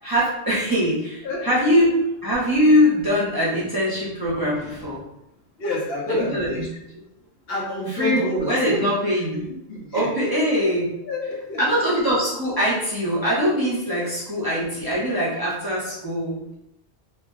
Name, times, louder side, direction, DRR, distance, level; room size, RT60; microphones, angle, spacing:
voice 1, 0.0-5.0 6.1-6.7 8.0-9.4 9.9-10.9 11.6-16.6, equal, 20° right, -8 dB, 0.8 m, -22 dB
voice 2, 1.2-1.6 3.5-3.6 5.6-6.7 7.5-8.9 9.3-10.4 11.0-11.6 14.0-14.1, left 1 dB, 65° left, -2 dB, 0.9 m, -28 dB
2.5 x 2.2 x 3.6 m, 0.83 s
omnidirectional pair, 1.1 m